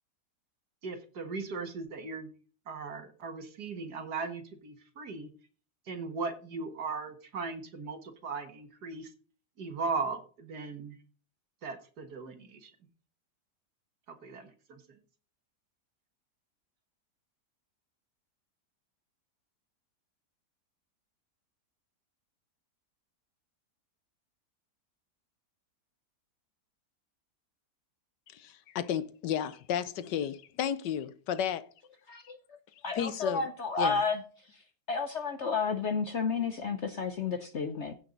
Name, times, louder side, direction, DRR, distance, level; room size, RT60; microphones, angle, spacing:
voice 1, 0.8-2.3 2.7-5.3 5.9-9.1 9.6-11.0 11.6-12.7 14.2-14.8, right 4 dB, 70° right, 2.1 m, -38 dB
voice 2, 28.3-31.7 32.2-32.3 32.9-33.5 33.8-34.0, left 9 dB, 90° left, 1.5 m, -33 dB
voice 3, 32.8-34.2 34.9-37.9, left 5 dB, 55° left, 0.9 m, -31 dB
16.0 x 5.7 x 3.9 m
omnidirectional pair, 1.8 m